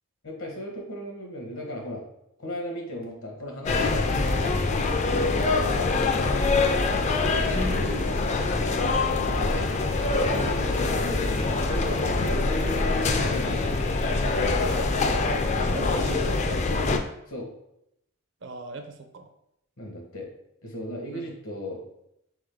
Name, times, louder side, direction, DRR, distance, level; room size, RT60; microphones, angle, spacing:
voice 1, 0.2-2.0 2.4-4.9 5.5-6.1 9.4-13.7 14.1-14.7 17.3-17.5 19.8-20.3 20.6-21.8, equal, 80° left, 0 dB, 1.2 m, -36 dB
sound 1, 3.7-17.0, left 3 dB, 35° left, 0.4 m, -24 dB
voice 2, 7.5-8.6 15.6-16.7 18.4-19.3 21.1-21.2, right 2 dB, 60° right, 6 dB, 0.6 m, -38 dB
3.7 x 3.6 x 3.5 m, 0.79 s
head